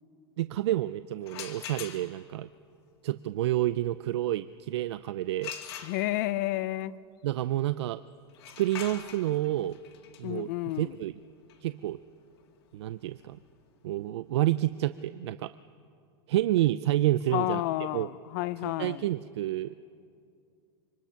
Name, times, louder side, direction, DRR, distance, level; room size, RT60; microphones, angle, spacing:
voice 1, 0.4-2.5 3.0-5.5 7.2-8.0 8.6-9.8 10.2-10.5 10.8-11.1 11.6-12.0 12.7-13.4 13.8-15.5 16.3-17.6 17.9-18.1 18.6-19.7, right 14 dB, 85° right, 14 dB, 0.5 m, -29 dB
sound 1, 1.2-2.4 5.4-6.4 8.3-14.0, left 9 dB, 70° left, 2.5 m, -44 dB
voice 2, 5.8-6.9 10.2-11.0 17.3-19.1, left 17 dB, 40° left, 18 dB, 0.5 m, -31 dB
25.5 x 24.0 x 5.8 m, 2.4 s
supercardioid pair, 175°, 14 cm